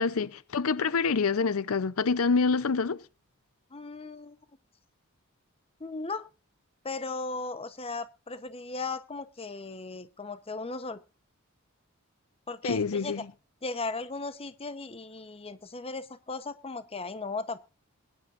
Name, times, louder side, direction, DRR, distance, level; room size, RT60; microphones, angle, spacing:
voice 1, 0.0-3.0 12.6-13.2, left 4 dB, 80° left, 0.6 m, -26 dB
voice 2, 3.7-4.4 5.8-6.3 6.8-11.0 12.5-13.3 13.6-17.6, left 3 dB, 25° left, 0.9 m, -37 dB
21.0 x 10.5 x 2.5 m
head